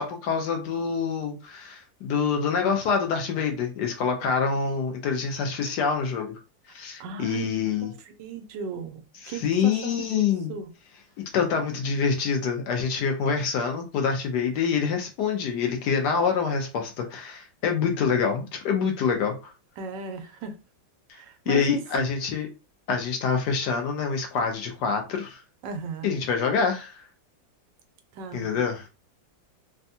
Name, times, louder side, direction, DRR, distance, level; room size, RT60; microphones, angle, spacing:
voice 1, 0.0-6.4 6.7-7.9 9.2-10.5 11.2-19.5 21.1-22.5 22.9-25.4 26.0-27.1 28.3-28.8, left 6 dB, 70° left, 1.1 m, -26 dB
voice 2, 7.0-7.5 7.8-10.2 10.5-10.7 19.8-20.5 21.1-22.1 25.6-26.2 28.1-28.6, right 6 dB, 75° right, 1.2 m, -36 dB
3.4 x 2.2 x 2.6 m
omnidirectional pair, 2.0 m